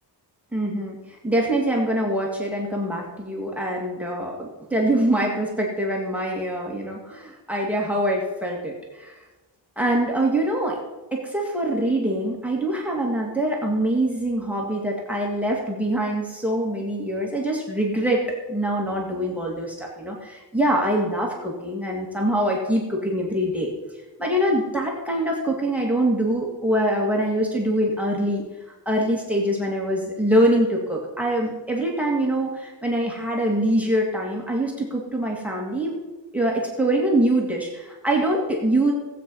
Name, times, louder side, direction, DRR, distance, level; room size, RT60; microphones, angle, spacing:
voice 1, 0.5-1.0 1.2-9.1 9.8-10.8 11.1-18.2 18.5-23.7 24.2-28.4 28.9-36.0 36.3-38.9, right 1 dB, 5° right, -1 dB, 2.0 m, -24 dB
16.5 x 8.5 x 5.4 m, 1.1 s
wide cardioid pair, 165°, 43 cm